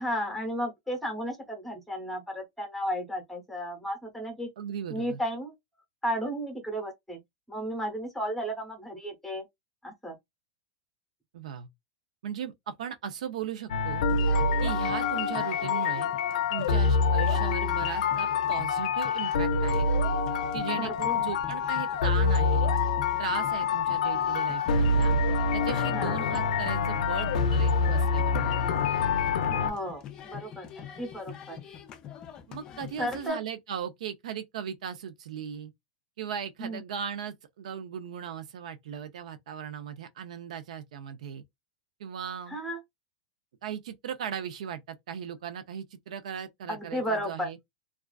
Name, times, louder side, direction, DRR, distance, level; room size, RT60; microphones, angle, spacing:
voice 1, 0.0-4.5 4.9-5.5 6.0-7.2 7.5-9.4 9.8-10.1 20.8-21.3 25.9-26.2 29.5-31.6 33.0-33.4 36.6-36.8 42.5-42.8 46.7-47.5, equal, ahead, 0.7 m, -33 dB
voice 2, 4.6-5.2 11.3-11.7 12.2-14.1 14.6-16.1 16.5-19.9 20.5-22.7 23.2-25.1 25.5-28.5 32.5-35.7 36.2-41.4 42.0-42.6 43.6-47.6, right 8 dB, 75° right, 0.4 m, -37 dB
sound 1, 13.7-29.7, left 4 dB, 85° left, 0.5 m, -26 dB
sound 2, 13.8-33.3, left 9 dB, 20° left, 0.3 m, -45 dB
2.3 x 2.3 x 2.3 m
supercardioid pair, 170°, 4 cm